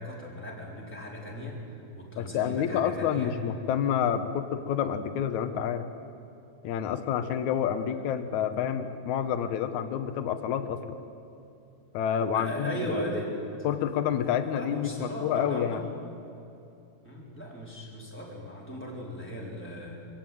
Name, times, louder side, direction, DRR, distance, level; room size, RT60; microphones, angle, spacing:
voice 1, 0.0-1.6 1.9-3.3 12.3-13.3 14.4-16.0 17.0-20.1, equal, 5° left, -4 dB, 3.8 m, -37 dB
voice 2, 2.2-5.9 6.6-11.0 11.9-13.0 13.6-15.8, left 8 dB, 65° left, 9 dB, 2.0 m, -28 dB
24.0 x 16.0 x 9.4 m, 2.7 s
omnidirectional pair, 4.3 m